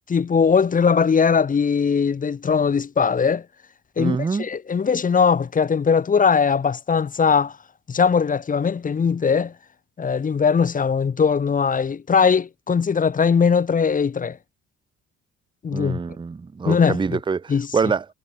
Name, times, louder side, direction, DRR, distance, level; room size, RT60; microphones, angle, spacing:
voice 1, 0.1-3.4 4.0-7.6 7.9-9.5 10.0-14.4 15.6-16.0 16.7-17.2 17.5-17.7, left 6 dB, 25° left, 0.6 m, -20 dB
voice 2, 4.0-4.5 15.7-18.0, right 5 dB, 15° right, 0.5 m, -25 dB
cardioid pair, 90°, 30 cm